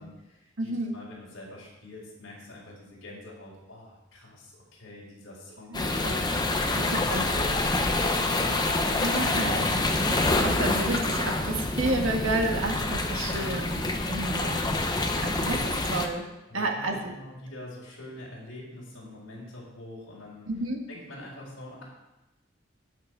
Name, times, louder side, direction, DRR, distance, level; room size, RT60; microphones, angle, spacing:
voice 1, 0.0-5.8 6.7-8.7 13.3-14.5 16.5-20.5 20.9-21.8, left 1 dB, 65° left, -6 dB, 3.9 m, -45 dB
voice 2, 0.6-0.9 5.7-6.3 6.8-7.5 9.0-9.8 10.2-13.8 14.1-14.6 15.2-16.3 16.5-17.1 20.5-20.9, right 2 dB, 90° right, 2 dB, 1.8 m, -31 dB
sound 1, 5.7-16.1, left 2 dB, 20° left, 1.0 m, -27 dB
18.0 x 6.0 x 4.6 m, 0.97 s
head